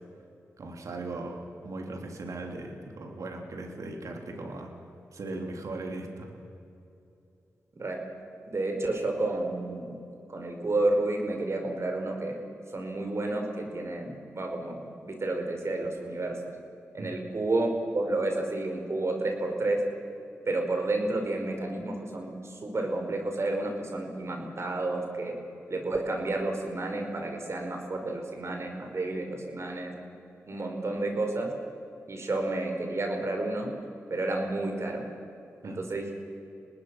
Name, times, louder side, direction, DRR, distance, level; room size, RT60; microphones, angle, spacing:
voice 1, 0.6-4.7 5.1-6.3 17.0-17.1 35.6-35.8, right 2 dB, 70° right, 3 dB, 3.4 m, -38 dB
voice 2, 8.4-10.0 10.3-12.4 12.7-16.4 16.9-19.8 20.4-25.4 25.7-29.9 30.5-31.5 32.1-33.7 34.1-35.0 35.6-36.1, right 2 dB, 55° right, 3 dB, 4.9 m, -30 dB
26.5 x 19.0 x 6.2 m, 2.7 s
cardioid pair, 45°, 6 cm